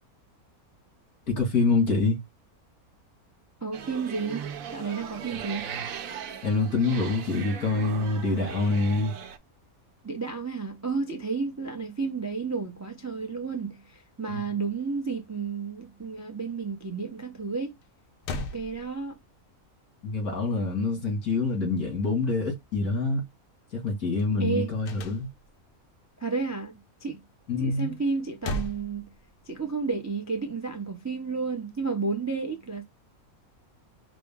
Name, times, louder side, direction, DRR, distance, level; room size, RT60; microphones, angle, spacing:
voice 1, 1.3-2.2 5.7-5.8 6.4-9.1 14.3-14.5 20.0-23.2 23.7-25.3 27.5-27.9, left 3 dB, 85° left, 2.4 m, -26 dB
voice 2, 3.6-4.4 4.7-5.7 10.0-17.7 18.5-19.2 24.4-24.7 26.2-27.2 27.6-29.1 29.5-32.8, right 4 dB, 25° right, 0.3 m, -31 dB
sound 1, 3.7-9.4, right 8 dB, 70° right, 1.0 m, -39 dB
sound 2, 17.8-17.9 18.2-19.4 24.8-25.7 28.1-29.7, left 1 dB, 60° left, 0.6 m, -36 dB
4.9 x 2.0 x 3.5 m
omnidirectional pair, 1.5 m